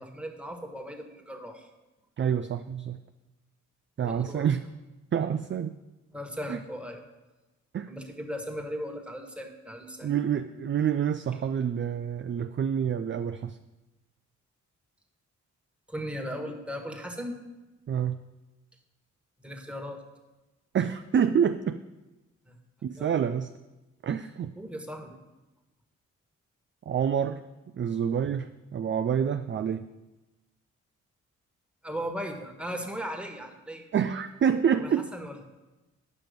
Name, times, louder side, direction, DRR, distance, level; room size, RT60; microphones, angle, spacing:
voice 1, 0.0-1.7 4.0-4.4 6.1-7.0 7.9-10.1 15.9-17.4 19.4-20.0 22.5-22.6 23.0-23.1 24.6-25.2 31.8-33.8 34.8-35.4, equal, 5° right, 2 dB, 1.6 m, -37 dB
voice 2, 2.2-3.0 4.0-4.6 5.1-5.8 6.5-6.6 7.7-7.9 10.0-13.6 17.9-18.2 20.7-21.8 22.8-23.5 24.0-24.5 26.9-27.4 27.7-29.9 33.9-35.1, right 8 dB, 35° right, 9 dB, 0.4 m, -27 dB
9.5 x 5.8 x 5.2 m, 1.1 s
supercardioid pair, 45°, 34 cm